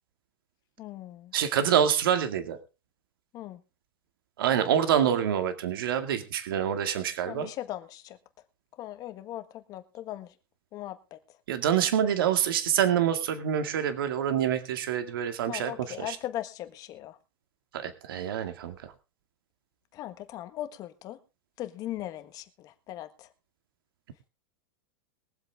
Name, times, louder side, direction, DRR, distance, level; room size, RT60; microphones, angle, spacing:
voice 1, 0.8-1.3 3.3-3.6 7.3-8.2 8.8-10.3 10.7-11.0 15.5-17.2 19.9-21.2 21.6-23.1, left 13 dB, 30° left, 1.5 m, -38 dB
voice 2, 1.3-2.6 4.4-7.5 11.5-16.2 17.7-18.9, right 9 dB, 80° right, 2.2 m, -26 dB
22.5 x 7.8 x 3.5 m
supercardioid pair, 155°, 12 cm